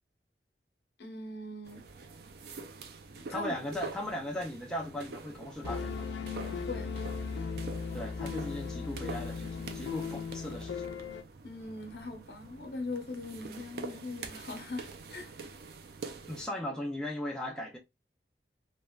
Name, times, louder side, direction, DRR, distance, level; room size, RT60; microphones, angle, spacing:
voice 1, 1.0-1.9 3.3-3.5 6.6-7.0 11.4-15.3, left 2 dB, 65° left, 0.9 m, -40 dB
sound 1, 1.6-16.5, right 4 dB, 60° right, 0.4 m, -46 dB
voice 2, 3.3-6.1 7.9-10.8 16.3-17.8, left 1 dB, 5° left, 0.4 m, -38 dB
sound 2, 5.6-11.2, left 5 dB, 85° left, 0.4 m, -37 dB
3.2 x 2.1 x 2.3 m
head